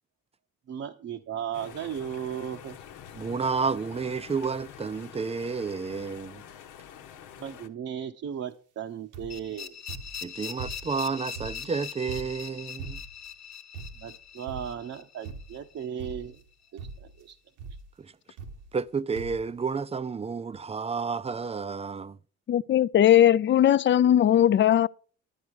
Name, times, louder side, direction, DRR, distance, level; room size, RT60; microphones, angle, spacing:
voice 1, 0.7-2.8 7.4-9.7 14.0-16.3, right 9 dB, 55° right, 0.8 m, -35 dB
sound 1, 1.5-7.7, left 9 dB, 90° left, 1.1 m, -47 dB
voice 2, 3.1-6.4 10.2-13.0 18.0-18.1 18.7-22.2, right 5 dB, 20° right, 0.5 m, -31 dB
sound 2, 9.1-9.5 9.9-11.0 11.3-13.3 13.7-14.2 14.5-14.9 15.3-15.7 16.0-16.5 16.8-17.2 17.6-17.9 18.4-18.9 19.2-19.5 20.2-20.3 20.5-20.6, right 4 dB, 85° right, 1.3 m, -42 dB
sound 3, 9.3-16.1, left 8 dB, 60° left, 1.2 m, -41 dB
voice 3, 22.5-24.9, left 11 dB, 40° left, 0.4 m, -19 dB
10.5 x 9.2 x 4.7 m
cardioid pair, 90°, 30 cm